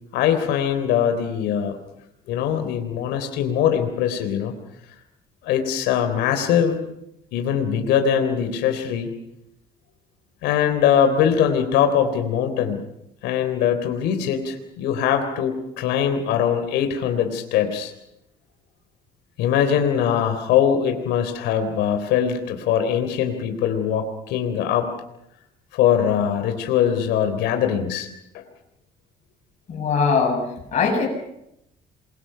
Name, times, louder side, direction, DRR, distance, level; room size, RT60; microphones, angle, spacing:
voice 1, 0.1-1.8 2.3-4.5 5.4-6.8 7.3-9.1 10.4-12.8 13.2-17.9 19.4-24.9 25.7-28.1 28.3-28.4, left 8 dB, 85° left, 7 dB, 3.7 m, -22 dB
voice 2, 29.7-30.4 30.7-31.1, left 5 dB, 45° left, 0 dB, 8.0 m, -20 dB
28.0 x 23.0 x 5.8 m, 0.81 s
cardioid pair, 110°, 17 cm